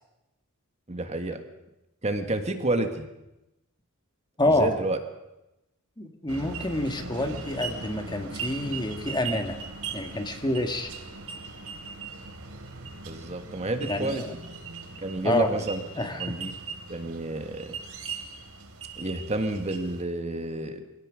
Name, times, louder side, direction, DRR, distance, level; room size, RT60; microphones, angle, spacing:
voice 1, 0.9-1.4 2.0-3.1 4.4-5.0 13.1-14.2 15.0-15.8 16.2-16.5 16.9-17.8 18.9-20.8, right 2 dB, 30° right, 6 dB, 1.6 m, -30 dB
voice 2, 4.4-4.7 6.0-9.6 9.9-10.9 13.8-14.3 15.2-15.5 15.9-16.4, left 1 dB, 20° left, 6 dB, 1.7 m, -27 dB
sound 1, 6.3-20.0, right 4 dB, 75° right, 3.0 m, -39 dB
23.5 x 17.5 x 6.4 m, 0.93 s
head